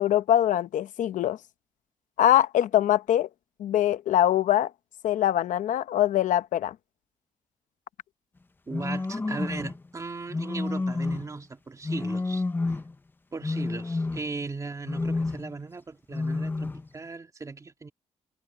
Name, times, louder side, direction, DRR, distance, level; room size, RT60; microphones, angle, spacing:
voice 1, 0.0-1.4 2.2-3.3 3.6-4.7 5.0-6.7, left 12 dB, 90° left, 0.8 m, -23 dB
sound 1, 8.7-9.8 10.3-11.4 11.8-13.0 13.4-14.5 14.9-15.6 16.1-16.9, left 3 dB, 15° left, 0.5 m, -30 dB
voice 2, 8.7-12.4 13.3-17.9, right 4 dB, 25° right, 2.4 m, -37 dB
cardioid pair, 130°, 13 cm